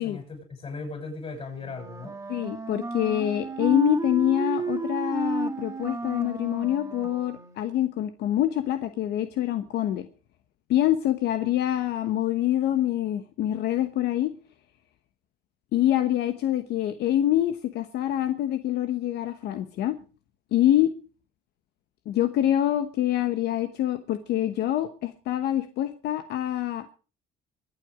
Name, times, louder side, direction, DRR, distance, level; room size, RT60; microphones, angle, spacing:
voice 1, 0.0-2.2, left 3 dB, 35° left, 5 dB, 7.3 m, -37 dB
Wind instrument woodwind instrument, 1.6-7.7, right 2 dB, 15° right, 2.4 m, -32 dB
voice 2, 2.3-10.1 10.7-14.3 15.7-20.0 20.5-20.9 22.1-26.9, left 12 dB, 75° left, 9 dB, 1.1 m, -25 dB
23.5 x 8.2 x 5.0 m, 0.36 s
cardioid pair, 110°, 17 cm